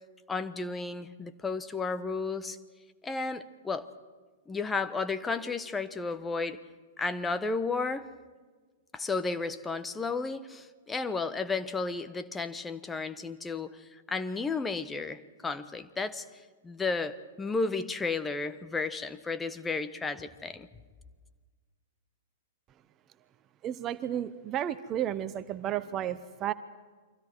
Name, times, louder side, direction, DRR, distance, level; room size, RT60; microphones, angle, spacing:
voice 1, 0.3-2.6 3.0-3.9 4.5-6.6 7.0-8.1 8.9-16.2 16.6-20.7, left 4 dB, 10° left, 12 dB, 1.1 m, -33 dB
voice 2, 23.6-26.5, right 11 dB, 30° right, 14 dB, 0.9 m, -32 dB
30.0 x 24.0 x 4.7 m, 1.4 s
figure-of-eight pair, 105°, 0 cm